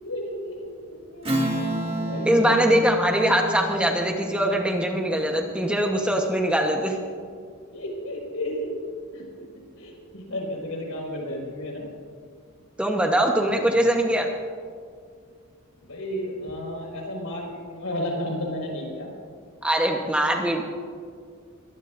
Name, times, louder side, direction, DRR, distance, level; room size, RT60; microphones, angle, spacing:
voice 1, 0.0-1.3 1.7-2.6 7.7-9.5 9.8-11.9 13.5-13.7 15.8-19.1, left 1 dB, 75° left, -1 dB, 5.2 m, -33 dB
Strum, 1.2-6.1, right 1 dB, 25° right, 1.9 m, -31 dB
voice 2, 2.2-7.0 12.8-14.3 19.6-20.6, right 1 dB, 5° right, 1 dB, 1.0 m, -22 dB
23.0 x 18.5 x 2.6 m, 2.1 s
head